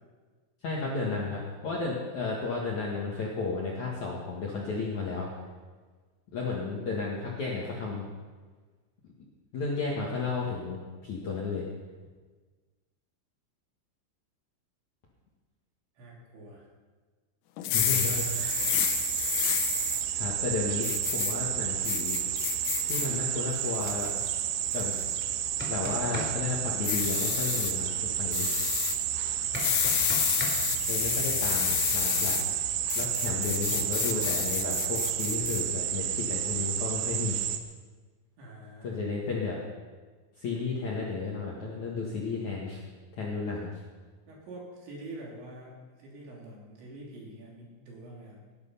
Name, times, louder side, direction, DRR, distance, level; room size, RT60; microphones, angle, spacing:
voice 1, 0.6-5.3 6.3-8.0 9.5-11.7 17.7-18.5 20.1-20.9 21.1-22.2 22.9-24.1 24.7-24.9 25.7-28.6 30.9-32.4 32.9-37.4 38.8-39.6 40.4-42.8 43.1-43.8, left 4 dB, 55° left, -4 dB, 2.2 m, -33 dB
voice 2, 16.0-16.7 17.6-19.0 30.6-31.0 38.4-39.0 44.3-48.4, right 1 dB, 65° right, -3 dB, 5.3 m, -46 dB
sound 1, 17.6-20.0 20.8-21.3 21.8-23.1 23.5-24.1 24.7-25.0 26.8-27.7 28.3-29.0 29.5-32.4 32.9-35.6, left 13 dB, 90° left, 3.7 m, -30 dB
sound 2, 17.7-37.6, right 11 dB, 85° right, 3.5 m, -31 dB
sound 3, 25.4-26.3 29.5-30.5, equal, 5° right, 2.1 m, -36 dB
19.0 x 11.0 x 5.6 m, 1.4 s
omnidirectional pair, 5.9 m